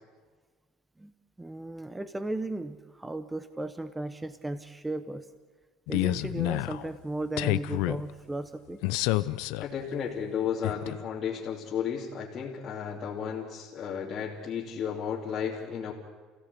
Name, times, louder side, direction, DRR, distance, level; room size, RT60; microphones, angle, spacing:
voice 1, 1.4-5.2 5.9-8.8, right 2 dB, 10° right, 11 dB, 0.9 m, -35 dB
sound 1, 5.9-6.9 7.4-8.0 8.8-9.6 10.6-11.0, left 19 dB, 80° left, 0.7 m, -28 dB
voice 2, 9.6-15.9, left 7 dB, 35° left, -5 dB, 2.9 m, -33 dB
30.0 x 16.5 x 8.4 m, 1.5 s
cardioid pair, 150°, 0 cm